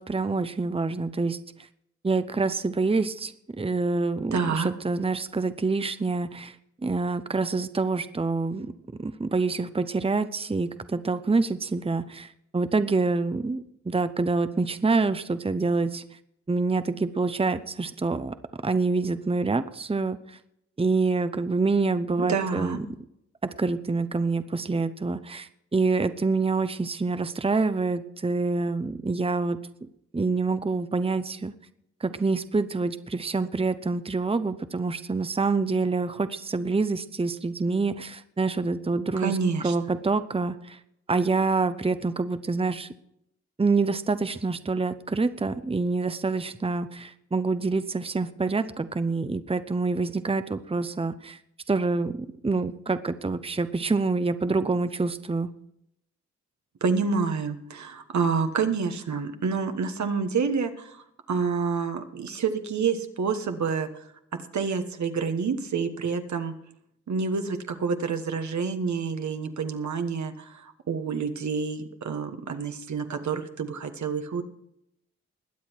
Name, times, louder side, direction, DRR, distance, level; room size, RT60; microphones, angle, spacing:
voice 1, 0.0-1.4 2.0-6.6 6.8-8.7 9.0-16.0 16.5-18.3 18.6-20.4 20.8-22.8 23.6-29.6 30.1-31.5 32.0-39.4 39.6-40.8 41.1-42.9 43.6-51.4 51.7-55.5, right 3 dB, 20° right, 11 dB, 0.8 m, -26 dB
voice 2, 4.3-4.7 22.2-22.8 39.2-39.7 56.8-61.0 61.3-63.9 64.5-66.5 67.1-74.4, right 5 dB, 75° right, 7 dB, 1.4 m, -28 dB
21.0 x 7.9 x 4.6 m, 0.76 s
cardioid pair, 55°, 29 cm